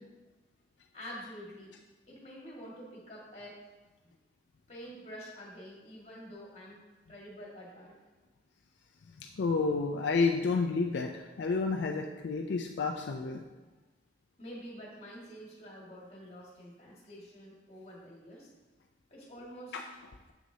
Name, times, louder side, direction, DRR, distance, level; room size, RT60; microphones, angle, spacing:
voice 1, 0.9-1.7 2.1-3.6 4.0-4.1 4.7-6.8 7.1-8.0 14.4-18.5 19.1-19.8, equal, 35° left, -4 dB, 1.9 m, -47 dB
voice 2, 9.3-13.4 19.7-19.8, left 4 dB, 75° left, 2 dB, 0.4 m, -30 dB
7.3 x 6.1 x 2.8 m, 1.2 s
head